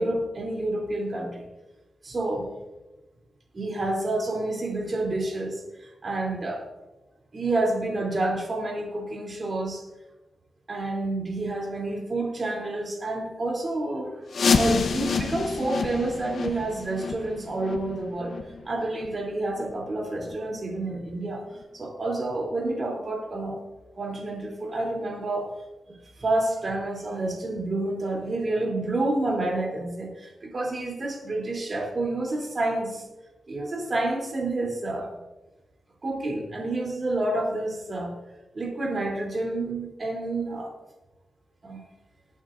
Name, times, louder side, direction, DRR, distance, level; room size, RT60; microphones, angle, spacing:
voice 1, 0.0-1.4 2.0-2.5 3.5-6.7 7.3-9.8 10.7-14.2 14.5-18.3 18.6-21.5 21.7-23.6 24.0-25.5 25.9-33.0 33.5-35.1 36.0-38.2 38.5-40.7 41.6-41.8, right 2 dB, 45° right, 0 dB, 3.3 m, -29 dB
sound 1, 14.3-19.9 20.2-20.4 20.9-21.0 21.6-21.7 22.2-22.3, left 4 dB, 80° left, 0.9 m, -28 dB
20.5 x 8.9 x 2.7 m, 1.1 s
wide cardioid pair, 105°, 0 cm